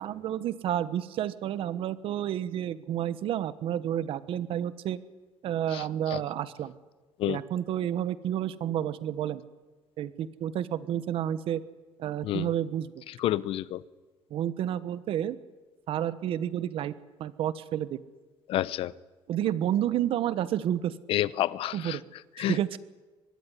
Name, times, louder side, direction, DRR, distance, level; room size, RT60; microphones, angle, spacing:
voice 1, 0.0-5.0 5.4-6.7 7.3-9.4 10.0-11.6 12.0-13.0 14.3-15.4 15.9-16.9 17.2-18.0 19.3-20.9 21.7-22.0 22.4-22.8, right 11 dB, 65° right, 15 dB, 1.4 m, -30 dB
voice 2, 13.2-13.8 18.5-18.9 21.1-22.0 22.4-22.6, left 13 dB, 70° left, 19 dB, 0.9 m, -29 dB
24.5 x 20.5 x 9.9 m, 1.2 s
cardioid pair, 125°, 10 cm